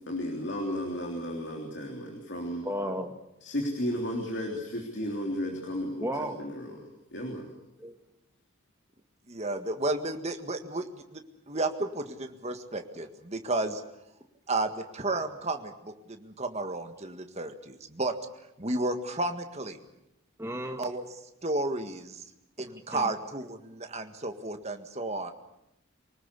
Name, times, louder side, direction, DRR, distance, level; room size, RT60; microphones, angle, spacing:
voice 1, 0.0-2.6 3.4-6.8 7.1-7.5, equal, 55° left, 1 dB, 3.4 m, -34 dB
voice 2, 2.6-3.1 6.0-6.4 7.8-7.9 20.4-20.9 22.9-23.0, equal, 10° right, 4 dB, 1.7 m, -33 dB
voice 3, 9.3-13.8 14.5-18.1 18.6-19.8 20.8-21.0 21.4-22.2 22.6-25.3, right 2 dB, 30° right, 7 dB, 1.7 m, -32 dB
24.5 x 19.0 x 8.3 m, 0.86 s
head